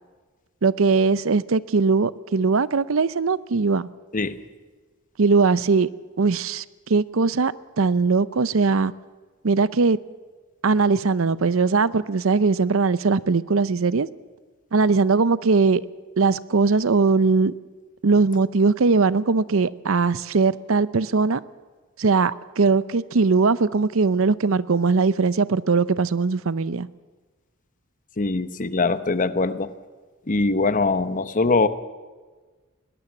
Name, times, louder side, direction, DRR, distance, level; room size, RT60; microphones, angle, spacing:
voice 1, 0.6-3.9 5.2-5.9 6.2-6.6 6.9-8.9 9.4-10.0 10.6-14.1 14.7-15.8 16.2-17.5 18.0-21.4 22.0-26.9, right 4 dB, 70° right, 17 dB, 0.6 m, -20 dB
voice 2, 28.2-29.7 30.3-31.7, left 3 dB, 40° left, 13 dB, 0.9 m, -22 dB
21.5 x 18.5 x 7.2 m, 1.3 s
head